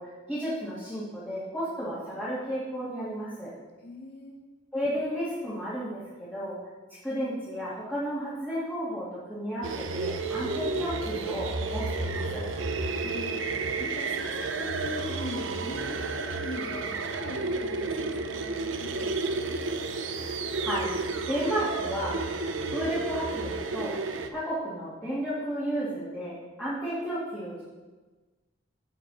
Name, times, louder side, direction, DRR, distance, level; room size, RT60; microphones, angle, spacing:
voice 1, 0.0-3.5 4.7-6.6 6.9-12.5 20.1-20.9 21.3-22.4 22.7-24.0 24.3-27.6, equal, 5° left, -11 dB, 2.4 m, -33 dB
voice 2, 3.8-4.4 12.8-19.6, left 2 dB, 50° left, -1 dB, 1.8 m, -41 dB
sound 1, 9.6-24.3, right 3 dB, 65° right, 0.8 m, -31 dB
15.5 x 6.1 x 4.3 m, 1.3 s
head